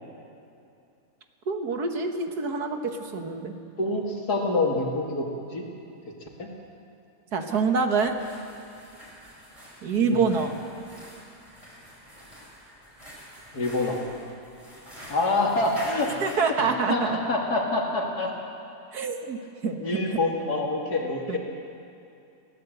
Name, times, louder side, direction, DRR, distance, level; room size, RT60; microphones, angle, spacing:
voice 1, 1.5-3.5 7.3-8.1 9.8-10.5 16.2-17.2 18.9-20.2 21.3-21.4, right 5 dB, 70° right, 5 dB, 1.9 m, -26 dB
voice 2, 3.8-5.6 6.4-6.5 10.1-10.3 13.5-14.0 15.1-16.2 16.5-18.3 19.6-21.4, left 2 dB, 70° left, 0 dB, 3.1 m, -26 dB
sound 1, 8.0-16.5, equal, 20° right, 5.7 m, -45 dB
20.5 x 17.0 x 8.0 m, 2.6 s
omnidirectional pair, 1.7 m